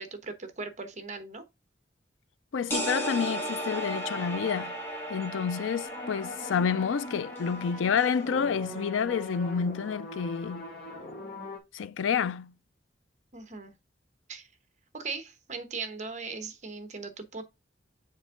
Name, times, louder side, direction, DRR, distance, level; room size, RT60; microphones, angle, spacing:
voice 1, 0.0-1.4 13.3-13.7 14.3-14.5 14.9-17.4, right 4 dB, 40° right, 1.1 m, -38 dB
voice 2, 2.5-4.7 5.1-10.7 11.7-12.5, left 6 dB, 80° left, 0.4 m, -29 dB
sound 1, 2.7-8.3, right 1 dB, 15° left, 2.5 m, -36 dB
sound 2, 5.8-11.6, left 1 dB, 55° left, 2.1 m, -41 dB
7.3 x 4.4 x 3.7 m
head